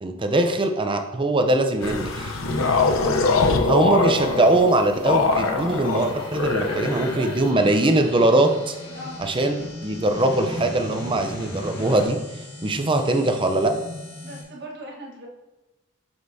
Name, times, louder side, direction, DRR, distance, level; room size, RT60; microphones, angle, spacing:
voice 1, 0.0-2.4 3.6-8.7 9.2-12.2 12.6-13.7, right 2 dB, 25° right, 6 dB, 0.6 m, -21 dB
sound 1, 1.8-7.5, left 3 dB, 70° left, 0.7 m, -23 dB
voice 2, 2.4-2.7 6.0-7.6 8.8-9.2 14.2-15.3, right 1 dB, 55° right, -1 dB, 1.4 m, -38 dB
sound 2, 4.1-12.1, left 1 dB, 45° left, 1.8 m, -40 dB
sound 3, 6.0-14.4, left 2 dB, 10° left, 1.5 m, -39 dB
7.9 x 5.3 x 2.7 m, 1.1 s
head